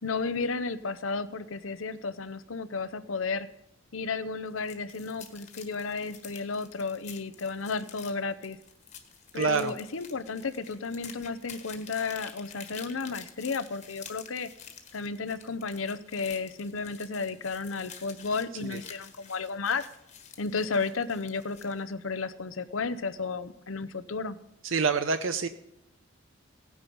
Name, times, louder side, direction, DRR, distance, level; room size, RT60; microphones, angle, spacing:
voice 1, 0.0-3.5 3.9-8.6 9.3-14.5 14.9-19.9 20.4-24.4, left 4 dB, 80° left, 14 dB, 0.8 m, -33 dB
sound 1, 4.5-21.8, left 7 dB, 35° left, 1.5 m, -49 dB
voice 2, 9.3-9.7 18.6-18.8 24.6-25.5, right 5 dB, 70° right, 10 dB, 0.6 m, -27 dB
17.0 x 9.7 x 5.4 m, 0.83 s
head